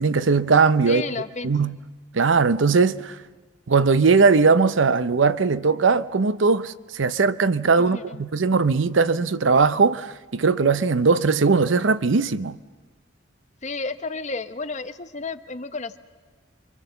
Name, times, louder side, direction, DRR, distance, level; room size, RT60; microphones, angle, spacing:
voice 1, 0.0-1.0 1.4-1.8 2.1-3.2 3.7-12.6, right 4 dB, 80° right, 0.7 m, -19 dB
voice 2, 0.8-1.5 7.8-8.2 13.6-16.0, left 3 dB, 40° left, 0.9 m, -32 dB
27.5 x 24.0 x 7.0 m
head